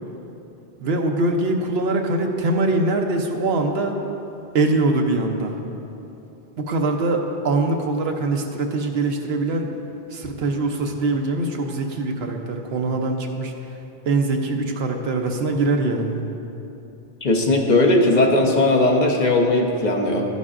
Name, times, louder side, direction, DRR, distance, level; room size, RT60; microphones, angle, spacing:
voice 1, 0.8-4.0 4.5-5.5 6.6-9.7 10.1-13.5 14.1-16.1, right 2 dB, 80° right, 3 dB, 1.0 m, -23 dB
voice 2, 17.2-20.3, left 2 dB, 50° left, 2 dB, 0.8 m, -18 dB
12.0 x 9.3 x 2.5 m, 2.9 s
omnidirectional pair, 1.0 m